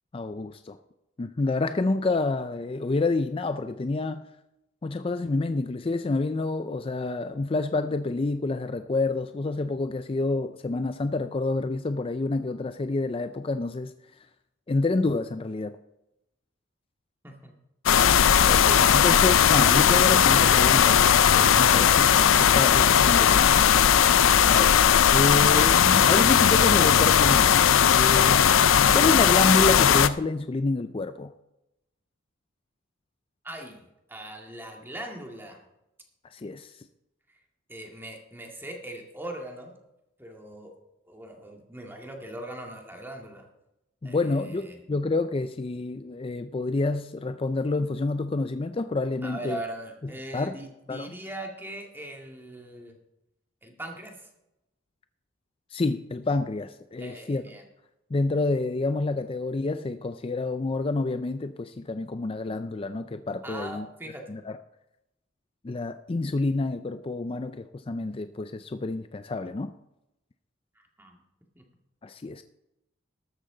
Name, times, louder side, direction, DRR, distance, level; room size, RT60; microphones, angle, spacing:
voice 1, 0.1-0.8 1.2-4.2 4.8-14.3 14.7-15.8 18.4-22.1 22.4-23.6 24.5-28.4 28.9-31.3 36.3-36.9 44.0-49.6 50.0-50.6 50.9-51.1 55.7-57.5 58.1-63.9 64.3-64.6 65.6-69.7 72.0-72.4, left 3 dB, 30° left, 10 dB, 0.4 m, -28 dB
sound 1, 17.9-30.1, left 8 dB, 80° left, 0.5 m, -18 dB
voice 2, 33.4-35.6 37.7-39.7 40.2-40.7 41.0-43.5 44.0-44.8 49.2-52.9 53.6-54.3 57.0-57.6 63.4-64.4 70.8-71.2 71.6-71.7, right 1 dB, 10° right, 1 dB, 2.0 m, -40 dB
13.0 x 13.0 x 3.9 m, 0.90 s
head